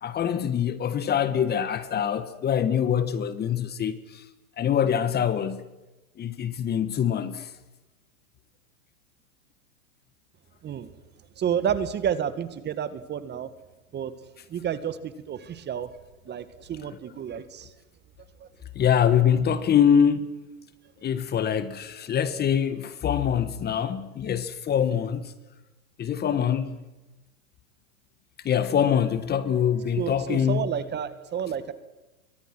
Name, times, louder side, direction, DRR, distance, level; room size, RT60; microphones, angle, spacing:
voice 1, 0.0-4.2 4.6-5.6 6.2-7.5 18.7-20.4 21.0-25.3 26.0-26.8 28.4-30.7, left 8 dB, 20° left, 1.6 m, -24 dB
voice 2, 11.4-13.5 13.9-14.1 14.5-15.9 16.3-17.7 18.4-18.5 30.0-31.7, right 8 dB, 25° right, 1.8 m, -30 dB
27.5 x 24.0 x 6.2 m
hypercardioid pair, 120°, 44 cm